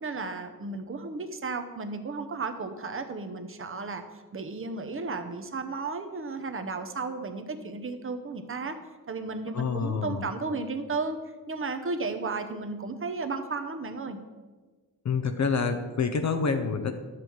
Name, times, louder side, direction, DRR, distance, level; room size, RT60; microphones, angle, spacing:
voice 1, 0.0-4.0 4.3-8.8 9.1-11.2 11.5-14.2, right 3 dB, 35° right, 7 dB, 0.9 m, -34 dB
voice 2, 9.5-10.3 15.0-17.0, left 5 dB, 50° left, 7 dB, 0.6 m, -27 dB
11.5 x 7.6 x 4.6 m, 1.3 s
wide cardioid pair, 160°, 36 cm